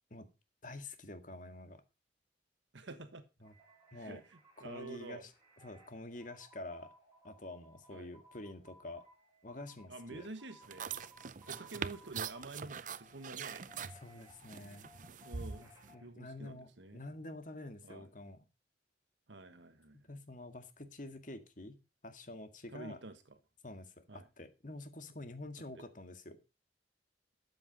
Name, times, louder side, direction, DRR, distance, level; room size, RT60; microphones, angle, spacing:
voice 1, 0.6-1.8 3.4-3.5 3.9-4.2 4.6-5.3 5.6-6.9 7.2-9.0 9.4-10.3 13.9-14.9 15.6-18.4 19.9-23.0 23.6-26.4, left 2 dB, 45° left, 1.9 m, -48 dB
voice 2, 2.7-3.2 3.9-5.3 7.9-8.1 9.9-13.6 15.2-15.7 16.0-17.2 17.8-18.1 19.3-20.1 22.7-23.4 24.1-24.3 25.8-25.9, right 2 dB, 90° right, 1.4 m, -49 dB
sound 1, 3.4-16.1, left 1 dB, 20° right, 7.5 m, -62 dB
sound 2, 10.6-15.9, right 6 dB, 45° right, 0.6 m, -44 dB
13.0 x 7.8 x 5.2 m
head